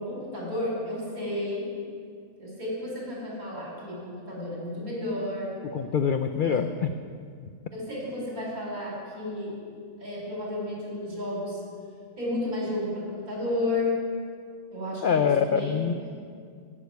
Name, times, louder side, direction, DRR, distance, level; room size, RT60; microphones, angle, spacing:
voice 1, 0.0-1.7 2.4-5.5 6.4-6.6 7.7-9.7 10.0-11.6 12.2-14.0 14.7-16.2, left 1 dB, 80° right, -4 dB, 4.5 m, -32 dB
voice 2, 5.7-6.9 15.0-16.0, left 7 dB, 80° left, 8 dB, 0.4 m, -24 dB
12.0 x 6.7 x 9.4 m, 2.2 s
omnidirectional pair, 1.5 m